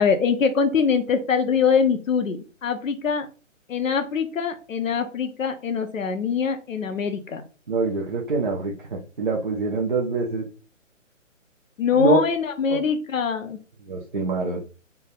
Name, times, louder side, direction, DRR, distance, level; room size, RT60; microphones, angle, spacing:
voice 1, 0.0-3.3 3.7-7.4 11.8-13.6, left 6 dB, 85° left, 7 dB, 0.9 m, -23 dB
voice 2, 7.7-10.4 11.9-12.2 12.7-12.8 13.9-14.6, right 4 dB, 40° right, -2 dB, 0.6 m, -25 dB
3.4 x 2.1 x 4.0 m, 0.35 s
hypercardioid pair, 175°, 39 cm